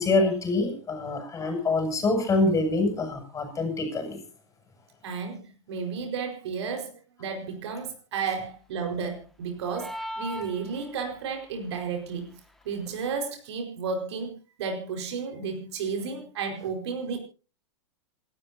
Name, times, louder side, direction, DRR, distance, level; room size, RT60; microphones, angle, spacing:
voice 1, 0.0-4.2, left 3 dB, 20° left, 4 dB, 7.9 m, -25 dB
voice 2, 5.0-12.3 12.6-17.2, right 5 dB, 65° right, 4 dB, 4.8 m, -33 dB
sound 1, 9.8-11.2, equal, ahead, 1.9 m, -37 dB
28.0 x 13.5 x 2.8 m, 0.35 s
hypercardioid pair, 105°, 15 cm